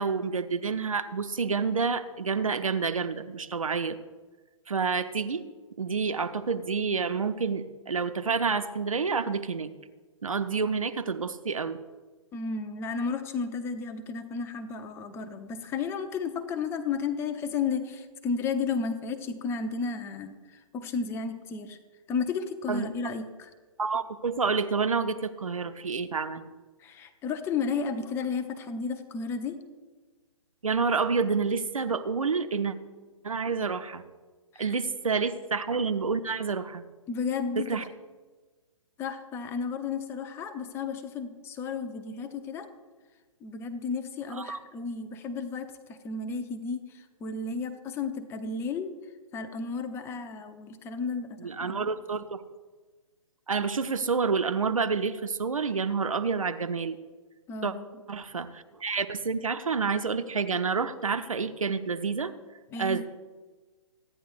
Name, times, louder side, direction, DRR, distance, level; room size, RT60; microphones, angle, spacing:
voice 1, 0.0-4.0 4.7-5.4 5.8-9.7 10.2-11.8 22.7-22.9 23.8-26.4 30.6-32.8 33.2-34.0 34.6-36.8 37.6-37.8 44.3-44.6 51.4-52.4 53.5-57.0 57.6-57.7 58.1-62.3 62.8-63.0, right 5 dB, 70° right, 9 dB, 1.0 m, -28 dB
voice 2, 12.3-21.8 22.1-23.5 26.8-29.6 34.5-34.7 37.1-37.9 39.0-42.7 43.4-48.9 49.3-51.9 57.5-57.8 62.7-63.0, left 5 dB, 15° left, 9 dB, 0.7 m, -33 dB
28.5 x 10.0 x 2.6 m, 1.3 s
figure-of-eight pair, 130°, 18 cm